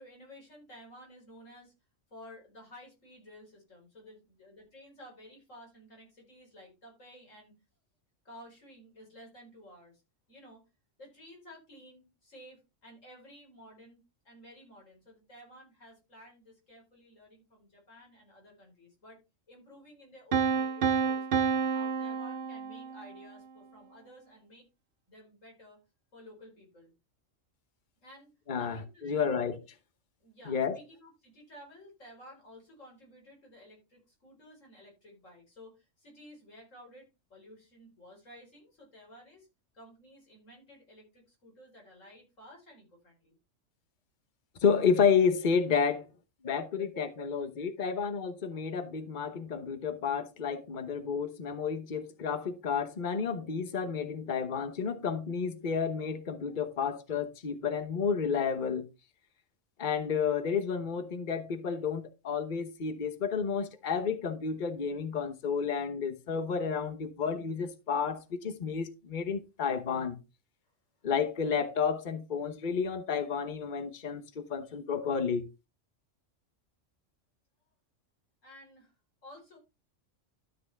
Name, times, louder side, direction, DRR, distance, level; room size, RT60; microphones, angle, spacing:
voice 1, 0.0-1.7 2.1-7.5 8.3-10.0 10.3-10.6 11.0-19.2 19.5-21.3 21.7-24.7 25.1-25.8 26.1-26.9 28.0-29.4 30.2-39.5 39.7-43.3 78.4-78.9 79.2-79.6, equal, 80° left, 5.2 m, -54 dB
Piano, 20.3-23.2, right 6 dB, 50° right, 0.8 m, -29 dB
voice 2, 28.5-29.6 30.5-30.8 44.6-46.1 46.4-58.8 59.8-70.2 71.0-75.5, left 6 dB, 40° left, 1.1 m, -31 dB
13.0 x 6.1 x 3.5 m
omnidirectional pair, 1.3 m